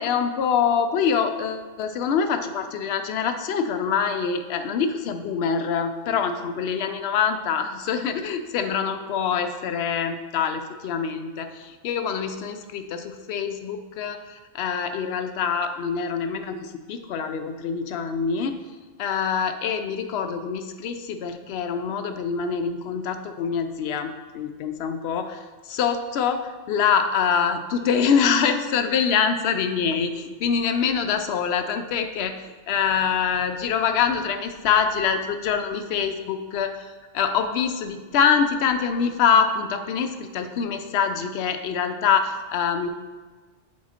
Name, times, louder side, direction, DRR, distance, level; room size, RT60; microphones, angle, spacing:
voice 1, 0.0-18.6 19.0-42.9, left 6 dB, 65° left, 7 dB, 0.8 m, -25 dB
7.4 x 3.8 x 4.3 m, 1.4 s
omnidirectional pair, 1.2 m